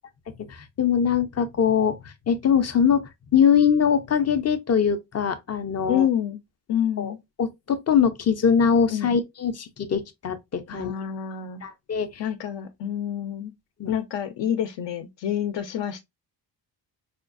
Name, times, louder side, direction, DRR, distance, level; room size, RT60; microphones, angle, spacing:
voice 1, 0.5-2.0 2.3-6.1 7.0-7.1 7.4-10.9 11.6-12.2 13.8-13.9, left 7 dB, 40° left, 0.5 m, -22 dB
voice 2, 5.9-6.4 6.7-7.2 8.9-9.1 10.7-11.6 12.2-13.5 13.9-16.0, left 9 dB, 80° left, 0.6 m, -27 dB
4.9 x 2.3 x 2.4 m
wide cardioid pair, 160°, 43 cm